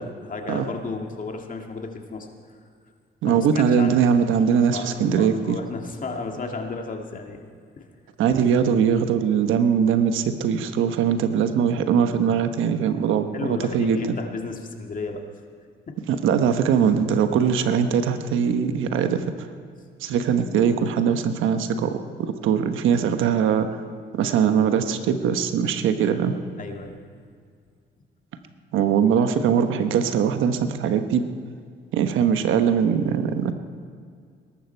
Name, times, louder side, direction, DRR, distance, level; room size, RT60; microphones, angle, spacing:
voice 1, 0.0-2.3 3.3-4.0 4.7-7.4 7.8-7.9 13.3-15.2 15.9-16.0 26.6-27.0, left 3 dB, 40° left, 3 dB, 2.1 m, -33 dB
voice 2, 3.2-5.6 8.2-14.0 16.1-19.5 20.0-23.7 24.1-26.3 28.7-31.2 31.9-33.5, right 7 dB, 85° right, 8 dB, 1.1 m, -21 dB
20.5 x 12.0 x 4.6 m, 2.2 s
cardioid pair, 90°, 20 cm